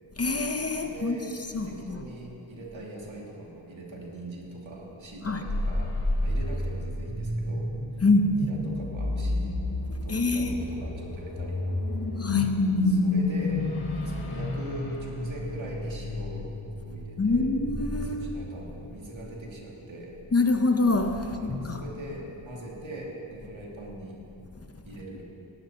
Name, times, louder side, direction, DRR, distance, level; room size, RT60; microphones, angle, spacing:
voice 1, 0.2-1.2 1.5-2.0 5.2-5.4 8.0-8.5 10.1-10.6 12.2-12.5 17.2-18.4 20.3-21.8, left 2 dB, 30° left, 5 dB, 0.8 m, -25 dB
voice 2, 0.8-1.3 1.6-5.9 6.2-8.0 8.3-9.5 10.0-11.6 12.1-12.2 12.8-13.7 14.0-16.5 16.9-17.5 18.0-20.1 21.2-24.2 24.8-25.2, right 1 dB, 80° right, -3 dB, 2.5 m, -41 dB
sound 1, 5.4-18.7, left 2 dB, 50° left, 1.4 m, -30 dB
18.0 x 12.0 x 2.9 m, 2.8 s
cardioid pair, 55°, 46 cm